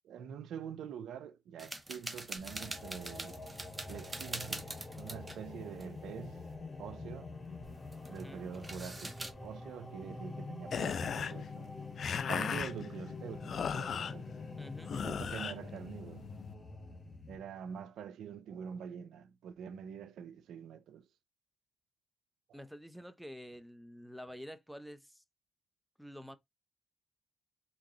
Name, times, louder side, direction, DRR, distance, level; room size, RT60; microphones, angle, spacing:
voice 1, 0.0-3.4 3.9-6.4 6.8-7.3 8.1-11.8 12.3-14.3 14.9-16.3 17.3-21.1 22.5-22.7, right 8 dB, 75° right, 0.4 m, -45 dB
sound 1, 1.6-5.5 5.7-5.9 6.3-6.6 7.6-8.3 8.5-9.3, right 2 dB, 20° right, 1.1 m, -44 dB
sound 2, 2.4-17.4, left 3 dB, 30° left, 2.0 m, -46 dB
voice 2, 8.0-8.5 14.6-15.0 22.5-25.2 26.0-26.4, equal, ahead, 0.7 m, -48 dB
sound 3, 10.7-16.5, left 7 dB, 60° left, 0.4 m, -38 dB
3.6 x 3.0 x 3.9 m
supercardioid pair, 65°, 0 cm